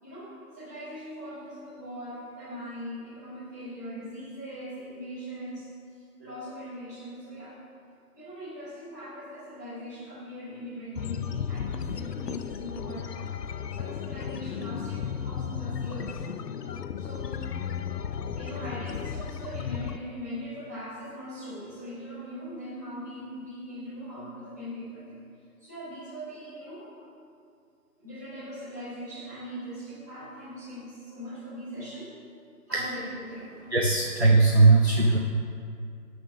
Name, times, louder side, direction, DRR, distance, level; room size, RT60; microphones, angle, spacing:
voice 1, 0.0-7.6 8.2-13.1 13.8-16.2 17.0-17.4 18.3-25.2 25.6-27.1 28.0-32.1 32.7-33.5 34.9-35.1, equal, 10° right, -16 dB, 1.8 m, -40 dB
sound 1, 10.9-20.0, left 8 dB, 85° left, 0.6 m, -34 dB
voice 2, 33.7-35.2, right 3 dB, 45° right, 0 dB, 0.4 m, -19 dB
8.2 x 5.9 x 6.2 m, 2.3 s
figure-of-eight pair, 180°, 47 cm